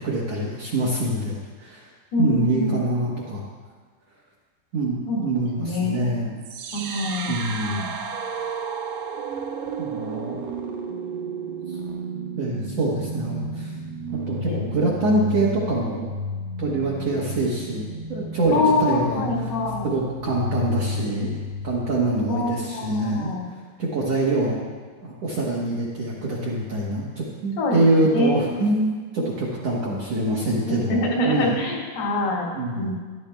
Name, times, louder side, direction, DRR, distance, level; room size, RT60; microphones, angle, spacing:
voice 1, 0.0-1.9 2.2-3.4 4.7-6.4 7.3-7.9 9.8-10.4 11.7-11.8 12.4-13.7 14.1-16.1 16.6-19.5 19.8-24.6 25.0-31.6 32.5-32.9, right 2 dB, 60° right, -6 dB, 1.8 m, -25 dB
voice 2, 2.1-2.8 5.1-5.3 5.6-6.1 6.7-7.3 7.7-7.9 14.5-14.6 18.5-19.9 22.3-22.9 23.1-23.4 27.6-27.8 28.1-28.4 30.7-32.5 32.7-32.9, left 2 dB, 80° left, -4 dB, 3.9 m, -24 dB
sound 1, 6.4-22.4, right 1 dB, 85° right, 2.7 m, -32 dB
14.0 x 11.5 x 2.3 m, 1.5 s
omnidirectional pair, 4.3 m